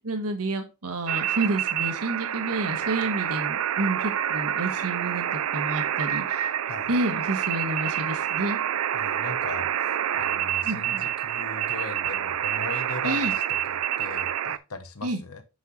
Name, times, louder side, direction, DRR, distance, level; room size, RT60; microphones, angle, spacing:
voice 1, 0.0-6.5 6.9-8.6 10.6-11.1 13.0-13.3 15.0-15.2, right 2 dB, 85° right, 6 dB, 1.4 m, -30 dB
sound 1, 1.1-14.6, right 10 dB, 70° right, 0.4 m, -28 dB
voice 2, 8.9-15.4, left 3 dB, 75° left, 8 dB, 1.1 m, -39 dB
7.6 x 6.4 x 3.2 m, 0.29 s
head